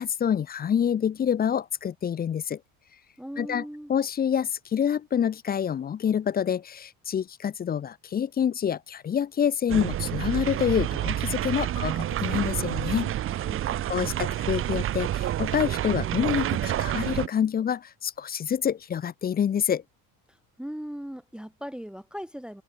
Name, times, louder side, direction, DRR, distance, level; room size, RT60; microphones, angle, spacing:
voice 1, 0.0-2.6 3.4-3.6 3.9-13.1 13.9-19.8, left 8 dB, 25° left, 0.5 m, -27 dB
voice 2, 3.2-3.9 20.3-22.6, equal, ahead, 1.3 m, -39 dB
sound 1, 9.7-17.3, right 12 dB, 35° right, 0.5 m, -29 dB
cardioid pair, 115°, 41 cm